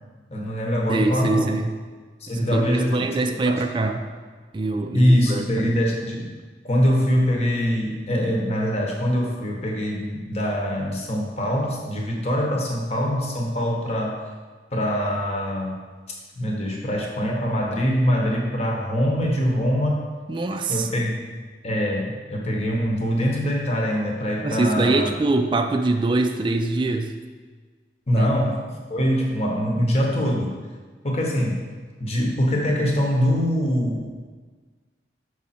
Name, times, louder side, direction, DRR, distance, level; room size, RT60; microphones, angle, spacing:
voice 1, 0.3-1.5 2.2-4.0 4.9-6.3 6.6-14.2 14.7-20.1 20.7-21.2 21.6-25.1 28.1-30.6 31.0-31.7 32.0-34.1, equal, 35° left, 0 dB, 1.0 m, -23 dB
voice 2, 0.9-1.7 2.3-4.1 4.5-5.7 20.3-20.9 24.4-27.1 28.1-28.3, right 2 dB, 25° right, 5 dB, 0.3 m, -24 dB
6.3 x 4.9 x 4.3 m, 1.4 s
head